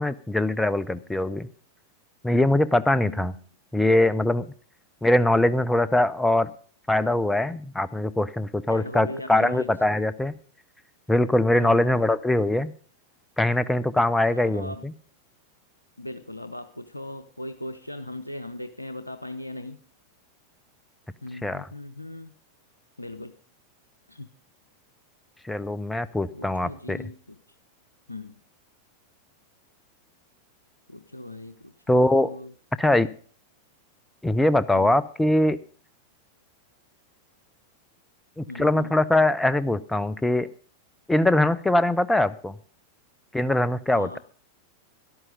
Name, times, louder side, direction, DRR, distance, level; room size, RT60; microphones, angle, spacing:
voice 1, 0.0-1.5 2.2-3.3 3.7-4.5 5.0-6.5 6.9-10.3 11.1-12.7 13.4-14.9 21.4-21.7 25.4-27.0 31.9-32.3 32.8-33.1 34.2-35.6 38.4-40.5 41.1-42.5 43.3-44.2, left 1 dB, 5° left, 16 dB, 0.6 m, -22 dB
voice 2, 2.9-3.3 8.7-9.7 11.6-12.0 14.3-14.9 16.0-19.8 21.2-22.3 23.0-23.3 24.1-24.3 26.3-27.4 28.1-28.4 30.9-32.5 34.7-35.0 38.5-39.0 43.9-44.2, left 1 dB, 85° left, 10 dB, 0.7 m, -39 dB
13.5 x 11.0 x 5.3 m, 0.42 s
figure-of-eight pair, 90°, 0 cm